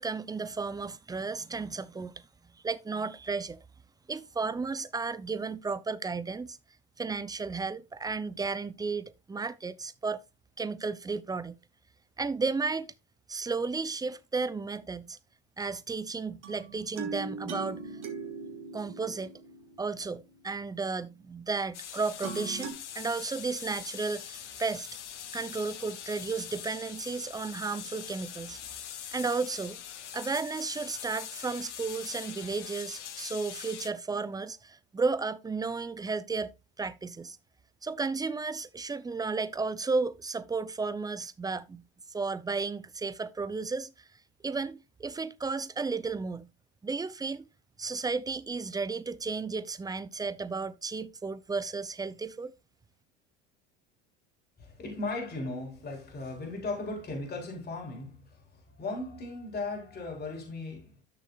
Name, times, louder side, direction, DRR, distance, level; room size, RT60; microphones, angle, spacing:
voice 1, 0.0-2.2 2.6-3.6 4.1-6.6 7.0-10.2 10.6-11.6 12.2-12.9 13.3-15.2 15.6-17.8 18.7-19.3 19.8-24.9 25.3-28.6 29.1-29.8 30.1-36.5 36.8-37.4 37.8-41.8 42.1-43.9 44.4-46.5 46.8-47.4 47.8-52.5, right 4 dB, 10° right, 0.6 m, -33 dB
sound 1, 16.4-20.4 22.2-22.7, right 4 dB, 80° right, 1.9 m, -40 dB
sound 2, 21.7-33.9, left 9 dB, 90° left, 0.9 m, -43 dB
voice 2, 54.6-60.9, left 3 dB, 30° left, 4.3 m, -37 dB
12.5 x 6.5 x 2.4 m
hypercardioid pair, 80°, 34 cm